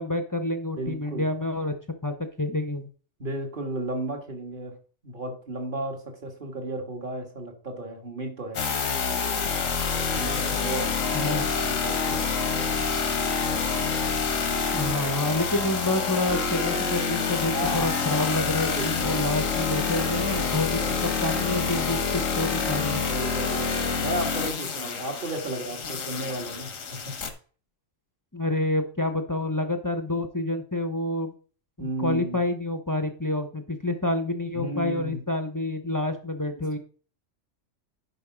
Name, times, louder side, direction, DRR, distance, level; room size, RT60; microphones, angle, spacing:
voice 1, 0.0-1.7 2.0-2.9 11.1-11.5 14.7-20.8 21.2-23.0 28.3-31.3 31.8-36.8, left 2 dB, 20° left, 7 dB, 0.8 m, -28 dB
voice 2, 0.8-1.3 3.2-4.8 5.0-8.6 10.1-12.7 13.9-14.3 17.5-18.0 18.6-18.9 20.8-21.1 23.1-27.2 31.8-32.4 34.5-35.2 36.6-36.7, right 1 dB, 40° right, 3 dB, 2.0 m, -34 dB
sound 1, 8.5-27.3, left 5 dB, 85° left, 1.6 m, -27 dB
10.5 x 5.2 x 5.0 m, 0.40 s
omnidirectional pair, 1.3 m